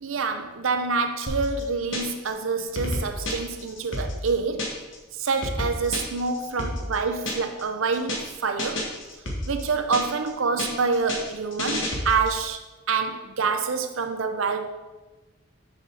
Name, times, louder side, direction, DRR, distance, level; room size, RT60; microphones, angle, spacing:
voice 1, 0.0-4.7 5.2-8.8 9.5-12.6 12.9-14.7, right 4 dB, 75° right, 7 dB, 0.6 m, -27 dB
sound 1, 1.3-2.3 2.6-5.0 5.3-7.6 7.9-8.3 8.6-10.3 10.6-12.4, left 1 dB, 60° left, 1.7 m, -31 dB
6.7 x 5.5 x 6.2 m, 1.2 s
head